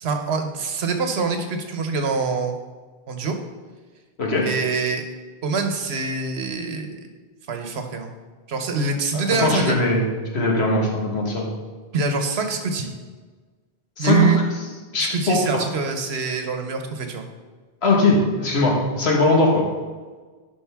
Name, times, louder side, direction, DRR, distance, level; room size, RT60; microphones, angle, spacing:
voice 1, 0.0-2.5 3.1-3.3 4.4-5.0 5.4-7.1 7.5-8.1 8.5-9.8 11.9-12.9 14.0-14.4 15.0-17.3, right 4 dB, 80° right, 5 dB, 1.1 m, -24 dB
voice 2, 9.1-11.5 14.0-14.3 14.9-15.4 17.8-19.6, left 2 dB, 80° left, -1 dB, 1.7 m, -20 dB
10.0 x 5.2 x 3.5 m, 1.4 s
omnidirectional pair, 1.1 m